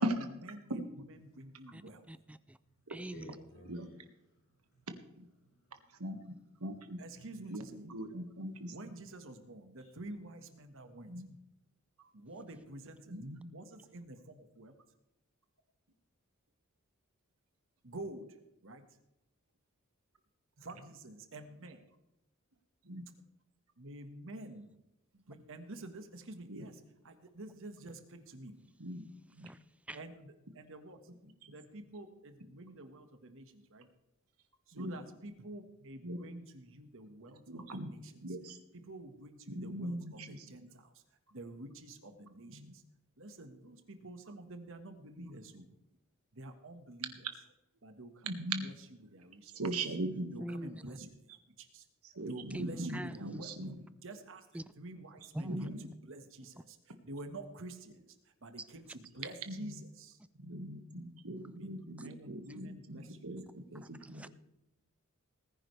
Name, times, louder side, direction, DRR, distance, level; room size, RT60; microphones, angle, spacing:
voice 1, 0.2-0.6 1.0-2.0 7.0-7.9 8.7-11.2 12.1-13.2 13.5-14.8 17.8-18.4 18.6-18.8 20.6-21.8 23.8-24.7 25.1-28.5 29.9-31.0 31.5-33.9 34.7-38.2 38.7-41.0 41.3-42.8 43.2-45.7 46.3-47.1 47.8-48.3 48.6-48.7 49.1-49.6 50.3-51.1 51.6-51.9 52.2-53.6 54.0-54.4 54.8-60.2 61.5-63.4, right 2 dB, 65° right, 7 dB, 1.7 m, -49 dB
voice 2, 2.1-2.6 2.9-3.4 12.5-12.6 29.4-30.0 50.4-50.8 52.5-53.4 54.5-54.6 55.3-55.6 58.6-58.7 62.0-62.1 63.8-64.3, right 1 dB, 5° right, 14 dB, 0.3 m, -44 dB
voice 3, 2.7-4.9 5.4-6.7 7.1-7.3 8.5-8.8, equal, 70° left, -5 dB, 4.7 m, -57 dB
voice 4, 6.6-7.0 7.5-9.0 11.1-11.3 13.1-13.5 22.8-23.1 26.5-26.7 28.8-29.1 29.4-29.5 31.4-31.5 34.7-35.0 36.0-36.2 37.5-37.9 38.2-38.6 39.5-40.5 42.5-42.7 45.2-45.3 48.2-48.7 49.5-50.3 52.1-53.8 55.4-55.9 59.5-59.7 60.4-64.3, right 1 dB, 80° right, 6 dB, 1.8 m, -39 dB
19.5 x 10.0 x 3.4 m, 0.89 s
head